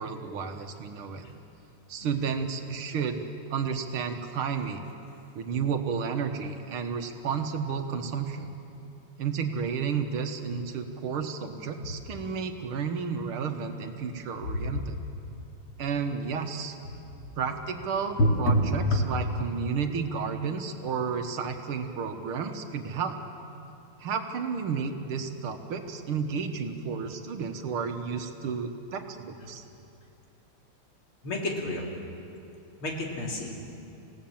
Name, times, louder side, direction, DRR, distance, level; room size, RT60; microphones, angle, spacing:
voice 1, 0.0-1.3 1.9-3.2 3.5-4.8 5.4-8.5 9.2-15.0 15.8-16.8 17.4-23.2 24.0-29.6, right 6 dB, 75° right, 6 dB, 2.1 m, -32 dB
voice 2, 18.2-18.6 18.9-19.0 31.2-31.9 32.8-33.6, left 1 dB, 70° left, 0 dB, 3.5 m, -27 dB
27.0 x 17.0 x 7.3 m, 2.7 s
omnidirectional pair, 2.4 m